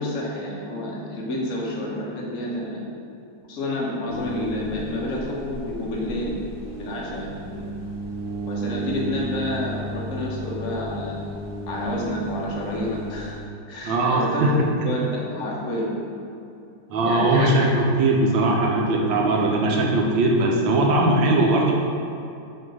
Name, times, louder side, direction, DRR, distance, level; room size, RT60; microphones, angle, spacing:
voice 1, 0.0-2.8 3.5-6.4 6.8-7.7 8.5-11.2 11.7-13.3 13.7-14.6 14.8-15.9 17.0-17.7, left 1 dB, 50° left, -4 dB, 1.1 m, -29 dB
sound 1, 4.1-13.4, right 1 dB, 25° right, 0.5 m, -33 dB
voice 2, 13.8-14.5 16.9-21.7, right 2 dB, 75° right, 0 dB, 1.4 m, -20 dB
5.7 x 3.1 x 5.3 m, 2.6 s
omnidirectional pair, 2.2 m